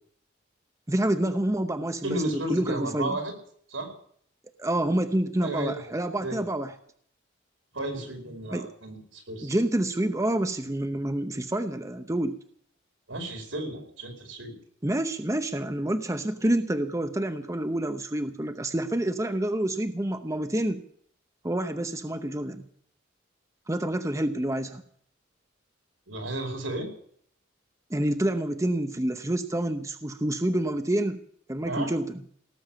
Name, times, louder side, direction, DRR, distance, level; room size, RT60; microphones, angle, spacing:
voice 1, 0.9-3.2 4.6-6.7 8.5-8.7 9.4-12.4 14.8-20.8 21.4-22.6 23.7-24.8 27.9-31.2 31.5-32.2, right 1 dB, 15° right, 8 dB, 0.8 m, -28 dB
voice 2, 2.0-3.4 3.7-3.9 5.4-6.4 7.7-9.6 13.1-14.5 26.1-26.9 31.6-31.9, right 1 dB, 90° right, 3 dB, 5.0 m, -33 dB
18.0 x 9.3 x 7.5 m, 0.63 s
head